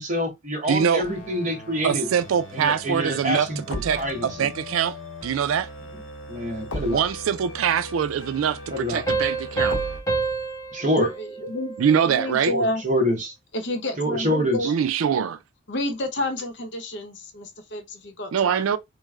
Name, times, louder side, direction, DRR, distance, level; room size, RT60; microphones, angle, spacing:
voice 1, 0.0-2.1 2.5-4.5 6.3-7.1 8.7-9.0 10.7-11.1 12.4-13.3 14.0-14.7, equal, 35° right, 1.0 m, -26 dB
voice 2, 0.7-1.0 1.8-4.9 5.2-5.7 6.9-9.8 11.8-12.5 14.6-15.4 18.3-18.8, right 7 dB, 85° right, 0.3 m, -23 dB
sound 1, 1.0-10.0, equal, 85° left, 1.0 m, -38 dB
sound 2, 9.1-12.4, right 4 dB, 15° left, 0.9 m, -28 dB
voice 3, 11.0-12.8 13.5-14.7 15.7-18.7, left 1 dB, 55° left, 0.7 m, -29 dB
3.2 x 2.1 x 3.5 m
head